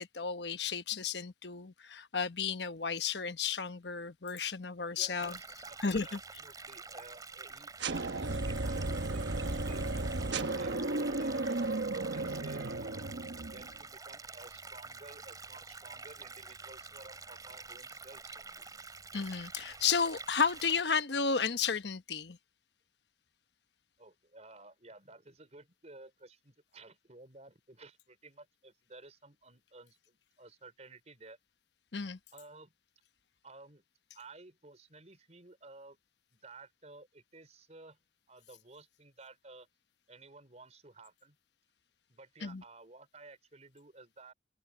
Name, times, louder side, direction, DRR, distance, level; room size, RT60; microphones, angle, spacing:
voice 1, 0.0-5.4 5.8-6.2 19.1-22.4 31.9-32.2 42.4-42.6, left 6 dB, 75° left, 1.1 m, -33 dB
voice 2, 4.9-11.4 11.9-13.1 13.4-18.7 24.0-31.4 32.3-32.7 33.4-33.8 34.1-36.0 36.3-38.0 38.3-39.7 40.1-41.4 42.1-44.3, right 3 dB, 40° right, 4.8 m, -54 dB
sound 1, 5.2-20.8, right 4 dB, 20° right, 3.1 m, -48 dB
sound 2, 7.8-13.8, right 2 dB, 85° right, 1.2 m, -34 dB
open air
head